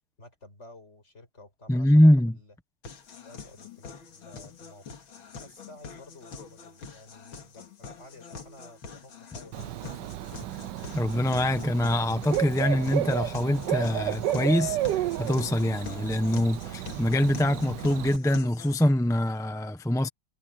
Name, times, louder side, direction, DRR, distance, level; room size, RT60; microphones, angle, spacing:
voice 1, 0.2-2.5 3.2-5.0 5.4-10.2, left 2 dB, 35° left, 5.3 m, -52 dB
voice 2, 1.7-2.4 10.9-20.1, left 1 dB, 5° left, 0.4 m, -24 dB
sound 1, 2.8-18.8, left 5 dB, 85° left, 2.8 m, -45 dB
Bird / Cricket, 9.5-18.2, right 13 dB, 70° right, 1.2 m, -32 dB
omnidirectional pair, 2.2 m